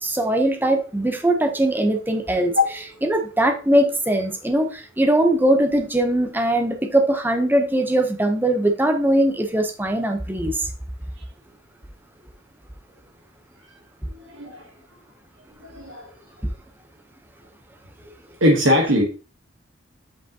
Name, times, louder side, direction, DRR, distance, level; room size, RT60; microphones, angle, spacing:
voice 1, 0.0-2.6 3.0-10.7, right 1 dB, 10° right, 5 dB, 0.7 m, -20 dB
voice 2, 14.1-14.7 15.6-16.1 18.4-19.0, left 1 dB, 70° right, 0 dB, 1.2 m, -20 dB
8.1 x 5.0 x 2.8 m, 0.35 s
head